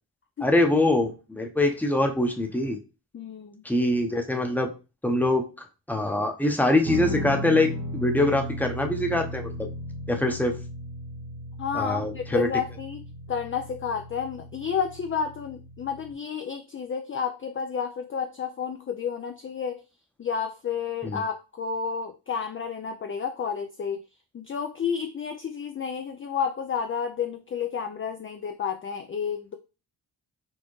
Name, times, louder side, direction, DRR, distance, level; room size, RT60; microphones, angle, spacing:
voice 1, 0.4-2.8 3.6-4.7 5.0-5.4 5.9-9.7 10.1-10.6 11.7-12.5 21.0-21.2, left 1 dB, 5° left, 4 dB, 0.8 m, -24 dB
voice 2, 3.1-3.6 11.6-13.0 13.3-19.8 20.2-24.0 24.3-29.5, left 6 dB, 30° left, 5 dB, 0.4 m, -31 dB
Guitar, 6.8-16.1, equal, 70° right, 1.2 m, -36 dB
4.5 x 2.1 x 3.1 m, 0.31 s
cardioid pair, 45°, 46 cm